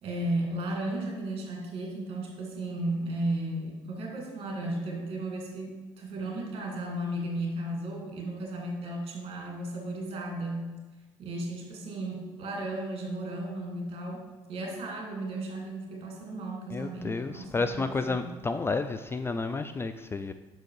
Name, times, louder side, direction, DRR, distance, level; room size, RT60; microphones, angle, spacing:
voice 1, 0.0-10.7 11.2-14.2 14.5-18.3, right 1 dB, 55° right, -1 dB, 2.3 m, -34 dB
voice 2, 16.7-20.3, left 3 dB, 20° left, 9 dB, 0.3 m, -31 dB
6.2 x 4.6 x 4.7 m, 1.3 s
supercardioid pair, 80°, 11 cm